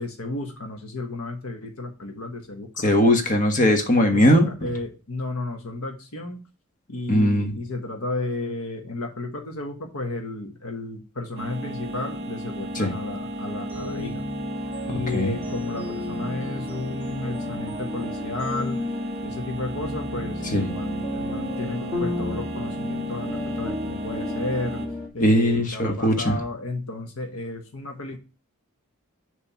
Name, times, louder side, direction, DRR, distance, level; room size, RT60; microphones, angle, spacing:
voice 1, 0.0-2.7 4.1-6.4 6.9-14.2 14.8-18.8 19.2-24.8 25.1-28.2, left 2 dB, 75° left, 4 dB, 1.2 m, -33 dB
voice 2, 2.8-4.5 7.1-7.5 12.7-12.9 15.1-15.3 20.5-20.7 25.2-26.4, left 1 dB, 35° left, 5 dB, 1.3 m, -19 dB
sound 1, 11.4-24.9, equal, 45° right, 1.1 m, -33 dB
sound 2, 13.7-25.1, left 2 dB, 10° right, 2.0 m, -34 dB
7.0 x 3.4 x 5.6 m, 0.33 s
head